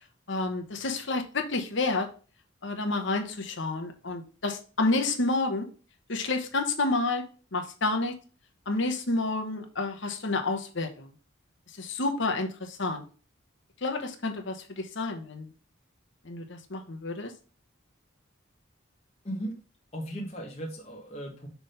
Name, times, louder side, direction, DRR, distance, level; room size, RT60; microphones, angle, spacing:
voice 1, 0.3-2.1 2.6-5.7 6.1-7.2 7.5-8.2 8.7-11.1 11.8-13.0 13.8-15.5 16.2-17.3, left 2 dB, 65° left, 5 dB, 1.0 m, -29 dB
voice 2, 19.2-19.6 19.9-21.5, right 1 dB, 30° left, -2 dB, 1.3 m, -36 dB
6.1 x 3.5 x 5.6 m, 0.36 s
head